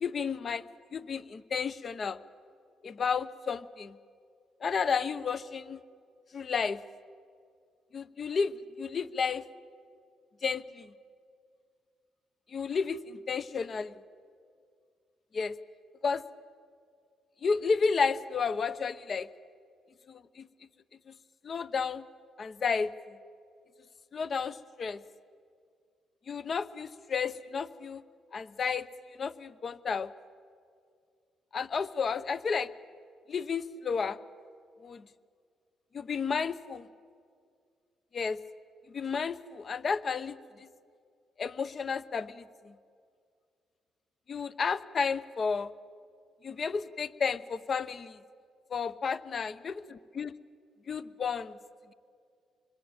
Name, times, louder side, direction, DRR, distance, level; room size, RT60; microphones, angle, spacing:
voice 1, 0.0-2.2 2.8-4.0 4.6-5.8 6.3-6.8 7.9-9.4 10.4-10.9 12.5-13.9 15.3-15.6 16.0-16.2 17.4-19.3 20.1-20.5 21.4-22.0 22.4-22.9 24.1-25.0 26.3-28.0 28.3-28.9 29.2-30.1 31.5-32.7 33.3-34.2 34.8-35.0 35.9-36.9 38.1-38.4 38.9-40.7 41.4-42.7 44.3-45.7 46.4-48.2 48.7-50.3 50.9-51.6, left 5 dB, 45° left, 15 dB, 0.9 m, -32 dB
26.0 x 21.5 x 8.9 m, 2.2 s
cardioid pair, 90°, 0 cm